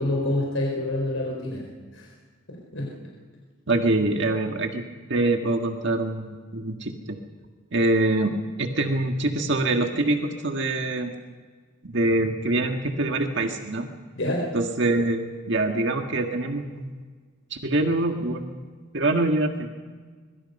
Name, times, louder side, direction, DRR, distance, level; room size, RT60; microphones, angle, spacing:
voice 1, 0.0-2.1 2.5-2.9 14.2-14.6, left 1 dB, 75° left, -1 dB, 4.3 m, -27 dB
voice 2, 3.7-4.8 5.1-7.2 7.7-11.1 11.8-13.9 14.5-17.0 17.5-18.6 18.9-19.7, right 2 dB, 60° right, 4 dB, 1.8 m, -24 dB
25.0 x 22.5 x 5.5 m, 1.5 s
head